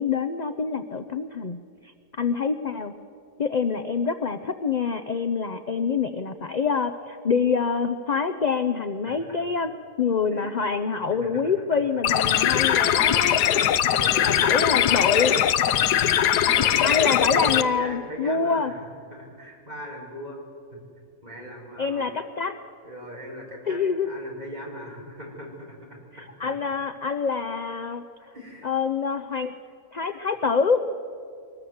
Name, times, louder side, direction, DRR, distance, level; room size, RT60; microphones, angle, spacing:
voice 1, 0.0-2.9 3.4-9.7 10.0-13.4 14.2-15.5 16.8-18.7 21.8-22.6 23.7-24.1 26.4-28.3 28.6-29.5 29.9-30.8, left 5 dB, 45° left, 10 dB, 0.5 m, -26 dB
voice 2, 11.2-11.5 13.8-14.6 16.4-20.4 20.7-20.8 21.2-22.1 22.8-26.3 28.3-28.7 30.1-30.2, equal, 25° right, -2 dB, 5.6 m, -39 dB
sound 1, 12.0-17.6, left 10 dB, 85° left, 1.3 m, -21 dB
23.5 x 19.5 x 7.9 m, 2.4 s
omnidirectional pair, 1.7 m